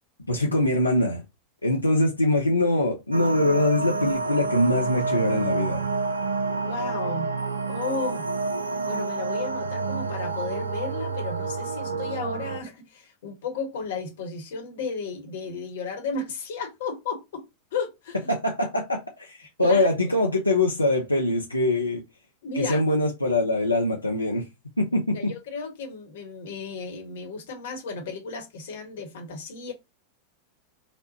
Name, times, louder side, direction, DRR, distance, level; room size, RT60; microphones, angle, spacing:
voice 1, 0.3-1.2 1.6-5.9 18.3-22.0 22.6-24.5 24.8-25.3, left 1 dB, 85° left, 0.5 m, -23 dB
sound 1, 3.1-12.6, right 3 dB, 75° right, 0.4 m, -28 dB
voice 2, 6.5-7.3 7.7-8.2 8.8-17.4 17.7-18.2 19.6-20.1 22.4-22.8 24.9-29.7, left 4 dB, 55° left, 1.0 m, -34 dB
4.1 x 2.1 x 2.7 m
figure-of-eight pair, 90°, 0 cm